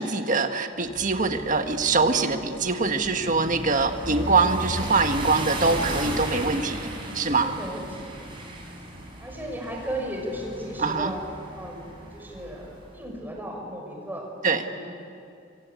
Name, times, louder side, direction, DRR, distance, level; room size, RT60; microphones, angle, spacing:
voice 1, 0.0-6.8 7.1-7.6 10.8-11.1 14.4-14.6, right 3 dB, 40° right, 6 dB, 1.6 m, -23 dB
sound 1, 0.8-13.0, right 1 dB, 25° right, 7.2 m, -35 dB
voice 2, 7.4-8.3 9.2-11.2 11.5-12.7 12.9-14.3 14.5-14.9, right 1 dB, 10° right, 0 dB, 6.0 m, -36 dB
26.0 x 25.5 x 8.5 m, 2.6 s
head